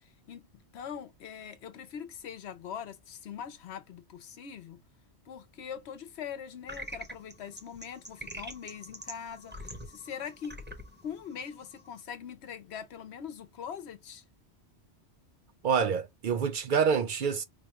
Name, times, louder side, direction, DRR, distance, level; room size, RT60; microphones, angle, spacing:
voice 1, 0.7-4.8 5.3-10.6 11.0-14.2, left 8 dB, 70° left, 1.0 m, -42 dB
sound 1, 6.7-12.0, equal, 10° right, 0.8 m, -45 dB
voice 2, 15.6-17.4, right 6 dB, 60° right, 0.6 m, -27 dB
4.8 x 2.2 x 2.9 m
omnidirectional pair, 1.1 m